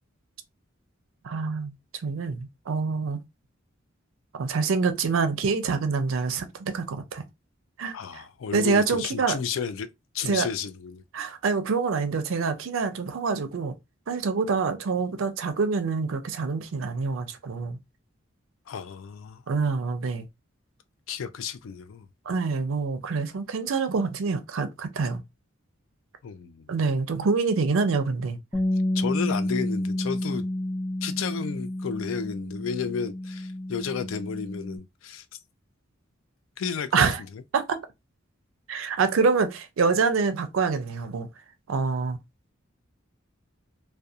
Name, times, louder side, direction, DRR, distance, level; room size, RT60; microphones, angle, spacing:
voice 1, 1.2-1.7 2.0-3.2 4.3-7.2 7.8-8.2 8.5-9.4 10.2-10.5 11.1-13.7 14.1-17.8 19.5-20.3 22.3-25.2 26.7-28.4 36.9-37.2 37.5-37.8 38.7-41.3 41.7-42.2, right 4 dB, 80° right, 0.5 m, -26 dB
voice 2, 7.9-9.9 10.1-11.0 18.7-19.4 21.1-22.1 26.2-26.7 28.9-30.4 31.0-35.2 36.6-37.1 37.3-37.4, left 6 dB, 75° left, 0.4 m, -32 dB
Bass guitar, 28.5-34.8, left 1 dB, ahead, 0.3 m, -30 dB
2.4 x 2.2 x 2.6 m
head